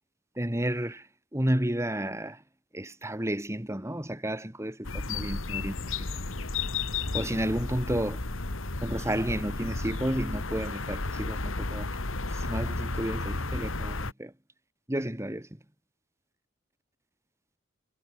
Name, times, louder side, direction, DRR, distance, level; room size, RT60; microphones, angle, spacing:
voice 1, 0.4-2.4 2.7-6.1 7.1-8.2 8.8-11.9 12.3-14.3 14.9-15.5, right 1 dB, 15° right, 1.8 m, -31 dB
sound 1, 4.8-14.1, left 3 dB, 70° left, 2.0 m, -33 dB
head